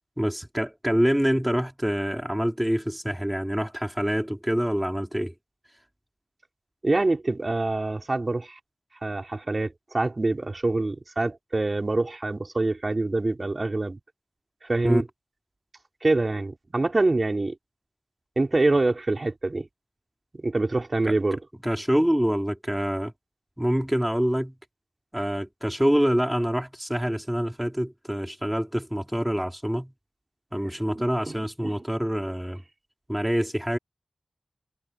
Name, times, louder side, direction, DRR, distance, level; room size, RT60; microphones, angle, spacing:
voice 1, 0.2-5.3 14.8-15.0 21.6-23.1 23.6-24.5 25.1-29.9 30.5-32.6 33.1-33.8, equal, 5° right, 4.8 m, -26 dB
voice 2, 6.8-8.6 9.0-14.0 14.6-15.0 16.0-17.6 18.4-19.7 20.3-21.4 30.9-31.8, right 2 dB, 50° right, 5.6 m, -25 dB
cardioid pair, 45°, 0 cm